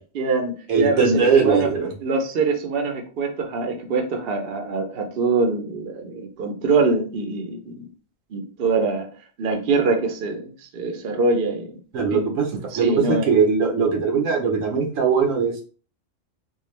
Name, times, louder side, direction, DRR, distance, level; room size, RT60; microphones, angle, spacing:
voice 1, 0.1-1.7 2.0-7.9 8.3-9.1 9.4-11.8 12.1-12.3 12.7-13.3, right 3 dB, 55° right, 4 dB, 0.8 m, -24 dB
voice 2, 0.7-1.9 11.9-12.5 12.7-15.6, right 5 dB, 90° right, 3 dB, 1.3 m, -20 dB
3.8 x 2.3 x 3.2 m, 0.37 s
omnidirectional pair, 1.3 m